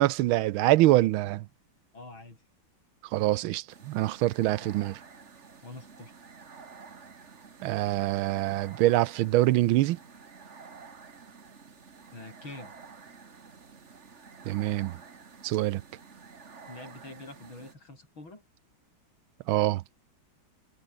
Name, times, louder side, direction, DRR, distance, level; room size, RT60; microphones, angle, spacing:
voice 1, 0.0-1.4 3.1-5.0 7.6-10.0 14.5-14.9 15.4-15.8 19.5-19.8, right 16 dB, 90° right, 1.5 m, -24 dB
voice 2, 1.9-2.4 4.6-4.8 5.6-6.1 12.1-12.7 16.7-18.4, left 2 dB, 80° left, 8.4 m, -45 dB
sound 1, 3.7-17.7, right 5 dB, 35° right, 1.9 m, -50 dB
omnidirectional pair, 2.2 m